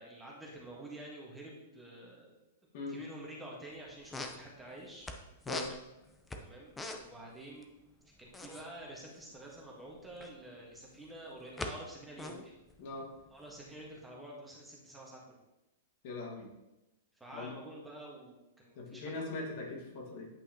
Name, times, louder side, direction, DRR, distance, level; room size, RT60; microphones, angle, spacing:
voice 1, 0.0-2.4 2.9-5.1 6.4-6.7 7.0-7.7 8.2-12.5 13.3-15.4 17.1-19.2, right 1 dB, 5° right, -3 dB, 1.5 m, -49 dB
sound 1, 3.7-3.8 4.0-5.2 5.4-7.2 7.5-7.6 7.9-10.4 10.9-11.7 12.0-13.9, left 2 dB, 10° left, 0.6 m, -42 dB
voice 2, 12.8-13.1 16.0-16.5 17.3-17.5 18.8-20.3, left 2 dB, 55° left, 0 dB, 1.7 m, -41 dB
8.9 x 5.4 x 3.0 m, 0.96 s
hypercardioid pair, 140°, 0 cm